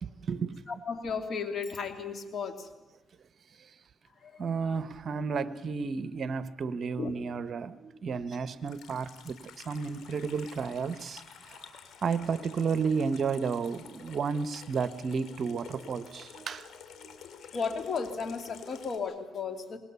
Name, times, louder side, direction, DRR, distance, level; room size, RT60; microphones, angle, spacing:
voice 1, 0.0-0.6 3.6-3.7 4.4-11.7 12.0-16.7 17.0-17.2, right 5 dB, 50° right, 14 dB, 1.0 m, -32 dB
voice 2, 0.7-2.7 4.2-4.8 7.0-7.1 17.4-19.8, left 5 dB, 50° left, 6 dB, 2.9 m, -35 dB
Water tap faucet / Sink (filling or washing), 8.6-19.0, left 7 dB, 75° left, 3.1 m, -50 dB
26.5 x 20.5 x 7.0 m, 1.1 s
cardioid pair, 90°, 0 cm